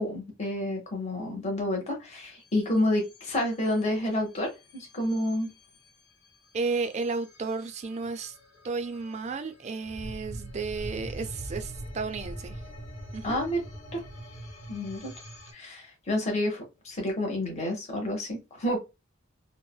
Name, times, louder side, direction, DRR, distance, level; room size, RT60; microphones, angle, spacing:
voice 1, 0.0-5.5 13.2-13.6 13.9-14.0 14.7-15.1 15.5-18.8, left 1 dB, 30° left, 0.7 m, -29 dB
sound 1, 2.4-15.5, right 1 dB, 75° left, 1.2 m, -44 dB
voice 2, 6.5-8.4 8.6-12.6 13.1-13.4, right 4 dB, 30° right, 0.3 m, -33 dB
3.1 x 2.0 x 2.2 m
head